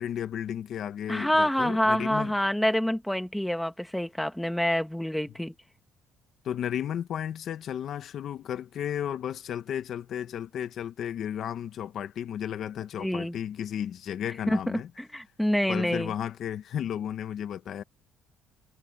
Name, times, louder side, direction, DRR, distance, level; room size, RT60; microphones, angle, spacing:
voice 1, 0.0-2.3 6.4-14.9 15.7-17.8, left 9 dB, 50° left, 0.9 m, -33 dB
voice 2, 1.1-5.5 13.0-13.4 14.5-16.1, equal, 5° left, 1.4 m, -27 dB
cardioid pair, 165°, 0 cm